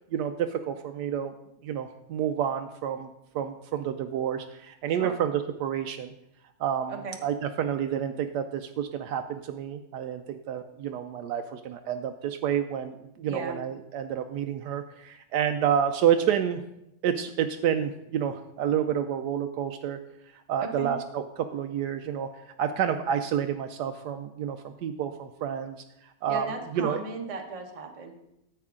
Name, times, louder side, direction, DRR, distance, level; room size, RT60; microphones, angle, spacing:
voice 1, 0.1-1.3 1.6-3.1 3.3-6.1 6.6-16.6 17.0-20.0 20.3-26.5 26.7-27.0, right 9 dB, 80° right, 7 dB, 1.1 m, -29 dB
voice 2, 13.3-13.6 20.6-20.9 26.3-28.2, right 3 dB, 25° right, 3 dB, 0.9 m, -36 dB
10.0 x 7.8 x 3.6 m, 0.82 s
omnidirectional pair, 1.8 m